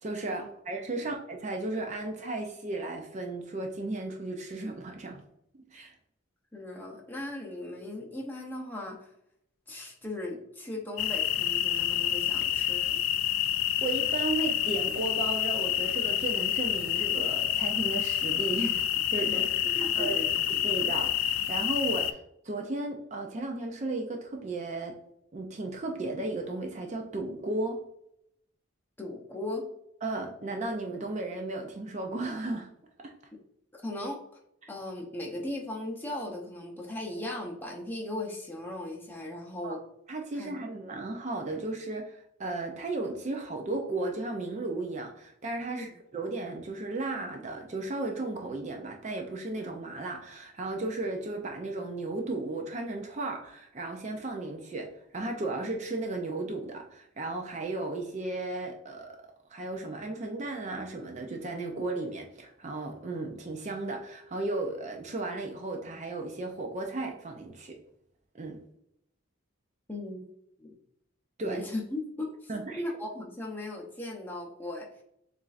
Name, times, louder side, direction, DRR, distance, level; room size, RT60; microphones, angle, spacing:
voice 1, 0.0-5.2 5.7-5.9 13.8-19.4 19.8-20.2 20.5-25.0 25.3-27.8 30.0-32.7 33.0-33.1 39.6-39.8 40.1-54.9 55.1-59.2 59.5-67.8 68.3-68.6 71.4-71.6 72.5-72.8, right 2 dB, 35° right, 3 dB, 0.4 m, -35 dB
voice 2, 6.5-9.1 9.7-13.0 19.3-20.3 29.0-29.7 33.7-34.2 34.7-39.8 40.3-40.6 45.7-45.9 69.9-70.2 70.6-70.7 71.4-74.9, left 1 dB, 10° left, -1 dB, 0.6 m, -38 dB
sound 1, 11.0-22.1, left 11 dB, 75° left, 0.3 m, -28 dB
7.0 x 2.5 x 2.4 m, 0.76 s
head